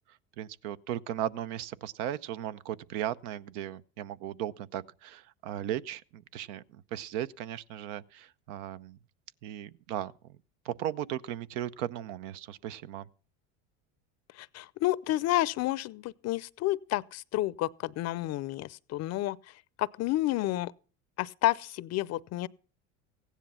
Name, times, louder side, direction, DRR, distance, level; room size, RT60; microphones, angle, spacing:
voice 1, 0.4-9.0 9.4-10.1 10.6-13.1, right 11 dB, 70° right, 0.8 m, -36 dB
voice 2, 14.3-19.4 19.8-20.7 21.2-22.5, left 16 dB, 45° left, 0.6 m, -30 dB
15.5 x 10.0 x 5.6 m
supercardioid pair, 100°, 37 cm